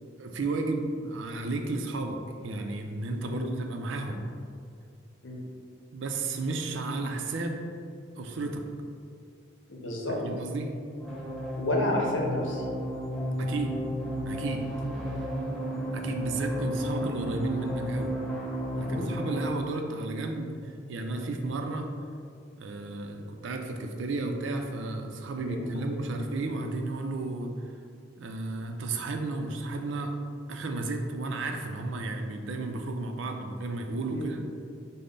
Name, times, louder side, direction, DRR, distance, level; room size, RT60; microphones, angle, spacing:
voice 1, 0.2-4.3 5.9-7.6 8.2-8.7 10.2-10.7 13.4-13.8 14.2-14.7 15.9-18.2 18.7-21.9 22.6-27.5 28.2-30.2 30.5-34.4, right 2 dB, 75° right, 4 dB, 0.4 m, -33 dB
voice 2, 9.7-10.2 11.6-12.6 18.8-19.1 25.5-25.6 34.1-34.3, left 1 dB, 75° left, -1 dB, 0.8 m, -30 dB
sound 1, 11.0-19.5, equal, ahead, 0.6 m, -33 dB
5.3 x 2.1 x 3.9 m, 2.3 s
head